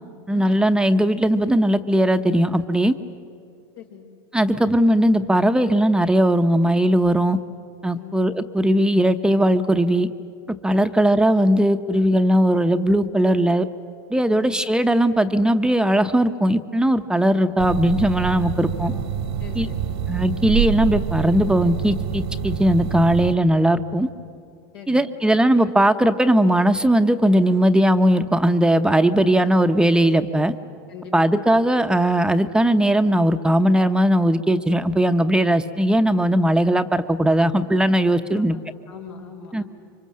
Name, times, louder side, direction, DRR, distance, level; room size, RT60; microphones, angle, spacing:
voice 1, 0.3-2.9 4.3-7.4 7.8-10.1 10.6-13.7 14.1-18.9 19.6-19.7 20.1-24.1 24.9-30.5 31.1-38.6 39.5-39.6, right 1 dB, 5° right, 8 dB, 0.8 m, -18 dB
voice 2, 3.7-4.1 7.9-8.2 10.8-11.1 14.3-14.5 18.8-19.1 19.4-20.0 24.7-25.1 30.9-31.5 38.3-38.4 38.9-39.6, left 7 dB, 85° left, 1 dB, 4.6 m, -41 dB
sound 1, 17.6-23.4, right 9 dB, 85° right, 1.6 m, -26 dB
26.0 x 24.5 x 7.5 m, 2.4 s
supercardioid pair, 110°, 12 cm